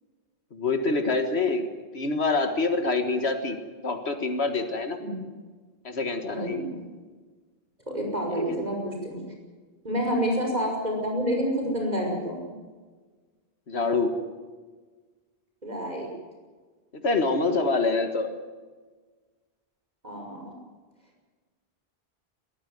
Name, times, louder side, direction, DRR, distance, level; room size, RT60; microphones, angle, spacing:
voice 1, 0.5-1.7 1.9-5.0 5.8-6.6 8.3-8.4 13.7-14.2 16.9-18.3, left 3 dB, 85° left, 7 dB, 2.0 m, -26 dB
voice 2, 6.3-6.8 7.9-9.2 9.8-12.5 15.6-16.1 20.0-20.5, equal, 40° right, 0 dB, 5.9 m, -28 dB
22.0 x 15.0 x 9.4 m, 1.4 s
omnidirectional pair, 1.1 m